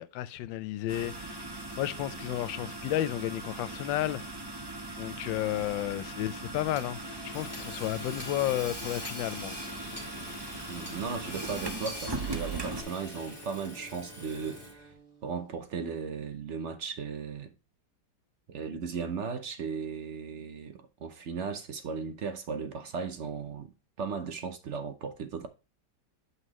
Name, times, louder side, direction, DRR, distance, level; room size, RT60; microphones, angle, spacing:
voice 1, 0.0-1.4 1.8-4.3 5.0-9.6, left 13 dB, 90° left, 1.3 m, -32 dB
sound 1, 0.9-12.8, right 2 dB, 35° right, 0.3 m, -40 dB
Hammer / Sawing, 6.7-14.9, left 1 dB, 5° left, 2.5 m, -43 dB
voice 2, 10.7-14.9 15.2-17.5 18.5-23.7 24.0-25.5, right 5 dB, 60° right, 0.7 m, -36 dB
Bowed string instrument, 10.8-16.7, right 5 dB, 10° right, 3.2 m, -54 dB
8.2 x 5.5 x 3.0 m
omnidirectional pair, 2.0 m